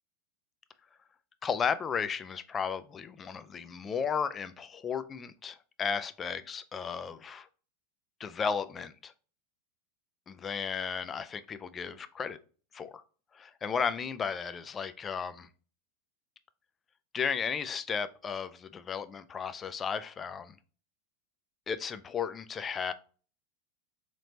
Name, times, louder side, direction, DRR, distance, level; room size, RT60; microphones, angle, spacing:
voice 1, 1.4-7.5 8.2-9.1 10.3-12.4 12.7-13.0 13.3-15.5 17.1-20.6 21.7-22.9, left 6 dB, 25° left, 0.3 m, -34 dB
4.0 x 3.0 x 2.7 m
figure-of-eight pair, 85°, 0 cm